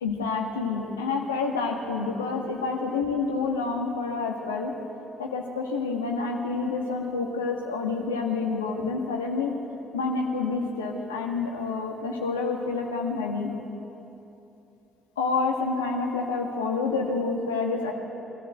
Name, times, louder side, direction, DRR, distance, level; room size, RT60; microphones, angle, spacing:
voice 1, 0.0-4.7 5.2-9.5 9.9-13.5 15.2-17.9, left 4 dB, 80° left, 1 dB, 1.8 m, -28 dB
23.0 x 14.0 x 8.1 m, 2.9 s
figure-of-eight pair, 45°, 0 cm